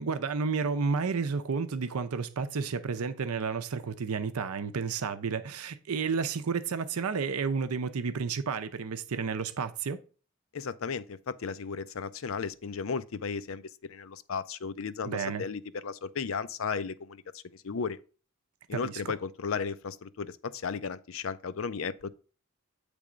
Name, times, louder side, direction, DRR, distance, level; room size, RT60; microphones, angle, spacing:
voice 1, 0.0-10.0 15.1-15.4 18.7-19.1, right 5 dB, 90° right, 0.6 m, -31 dB
voice 2, 10.5-18.0 18.7-22.1, left 5 dB, 70° left, 0.5 m, -35 dB
8.5 x 3.4 x 5.0 m
head